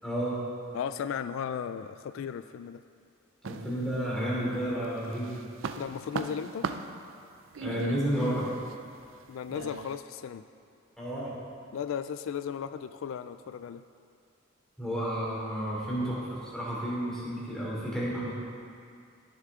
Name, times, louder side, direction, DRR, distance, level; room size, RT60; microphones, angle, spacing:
voice 1, 0.0-0.4 3.4-5.4 7.6-8.5 11.0-11.4 14.8-18.3, equal, 5° left, -8 dB, 2.9 m, -31 dB
voice 2, 0.7-2.8 5.8-6.7 9.3-10.4 11.7-13.8, left 7 dB, 75° left, 11 dB, 0.3 m, -35 dB
sound 1, 3.4-4.4 4.8-10.0, right 5 dB, 70° right, 0.5 m, -39 dB
17.5 x 6.9 x 3.7 m, 2.4 s
head